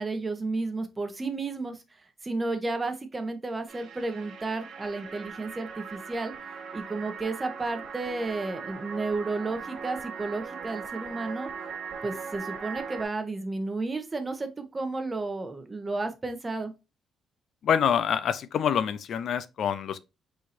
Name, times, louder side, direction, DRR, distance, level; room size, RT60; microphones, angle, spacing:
voice 1, 0.0-1.8 2.2-6.3 6.7-11.5 12.0-16.7, right 3 dB, 25° right, 1.0 m, -32 dB
sound 1, 3.7-13.1, right 6 dB, 65° right, 1.2 m, -39 dB
voice 2, 17.6-20.0, left 8 dB, 65° left, 0.4 m, -26 dB
4.6 x 4.2 x 2.7 m
cardioid pair, 90°, 0 cm